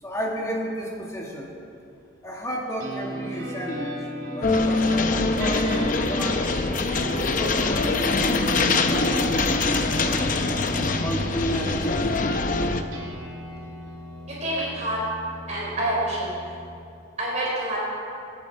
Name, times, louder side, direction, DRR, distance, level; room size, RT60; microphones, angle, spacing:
voice 1, 0.0-1.5 2.2-3.9 4.3-6.5 7.0-10.5 11.0-12.4, equal, 15° left, -2 dB, 1.5 m, -32 dB
sound 1, 2.8-16.8, equal, 90° right, 2.9 m, -35 dB
sound 2, 4.4-12.8, left 3 dB, 40° left, 0.7 m, -24 dB
voice 2, 14.3-15.0 15.5-16.5 17.2-17.8, right 1 dB, 35° right, -5 dB, 3.9 m, -27 dB
25.0 x 9.0 x 4.4 m, 2.6 s
head